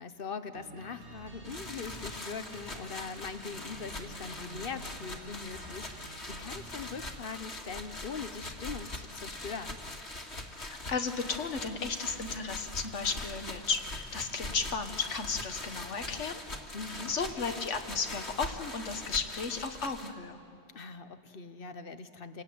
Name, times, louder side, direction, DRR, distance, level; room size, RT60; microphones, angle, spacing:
voice 1, 0.0-9.8 16.7-17.1 20.7-22.4, left 5 dB, 50° left, 10 dB, 1.2 m, -41 dB
sound 1, 0.5-7.2, right 2 dB, 70° right, 1.9 m, -50 dB
sound 2, 1.4-20.1, left 1 dB, 70° left, 2.5 m, -42 dB
voice 2, 10.6-16.4 16.9-20.4, left 5 dB, 90° left, 7 dB, 1.6 m, -34 dB
28.0 x 18.5 x 9.4 m, 2.4 s
omnidirectional pair, 1.2 m